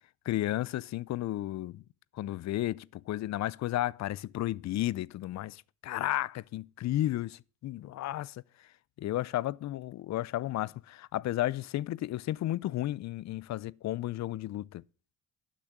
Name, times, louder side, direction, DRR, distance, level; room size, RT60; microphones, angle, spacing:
voice 1, 0.3-1.8 2.1-8.4 9.0-14.8, left 14 dB, 65° left, 0.5 m, -33 dB
12.0 x 6.3 x 7.1 m
cardioid pair, 90°, 30 cm